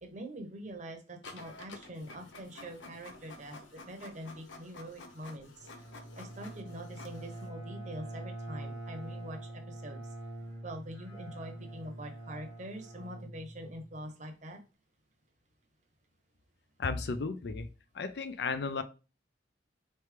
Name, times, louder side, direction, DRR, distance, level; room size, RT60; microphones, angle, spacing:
voice 1, 0.0-5.9 6.1-10.0 10.6-14.6, right 1 dB, 40° right, 0.8 m, -44 dB
Printer, 1.2-7.5, left 3 dB, 85° left, 0.8 m, -51 dB
Bowed string instrument, 5.6-14.0, right 1 dB, 15° left, 1.1 m, -44 dB
voice 2, 16.8-17.7 17.9-18.8, left 4 dB, 60° left, 0.4 m, -34 dB
4.2 x 3.3 x 3.3 m
head